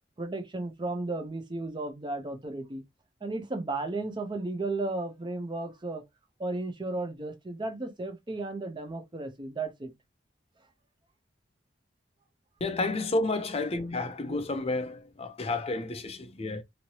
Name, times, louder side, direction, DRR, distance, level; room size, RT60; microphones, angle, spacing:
voice 1, 0.2-2.8 3.2-6.0 6.4-9.9 14.3-14.4, right 2 dB, 25° right, 0.6 m, -34 dB
voice 2, 12.6-16.6, left 2 dB, 30° left, 0.5 m, -31 dB
3.0 x 2.8 x 2.8 m
head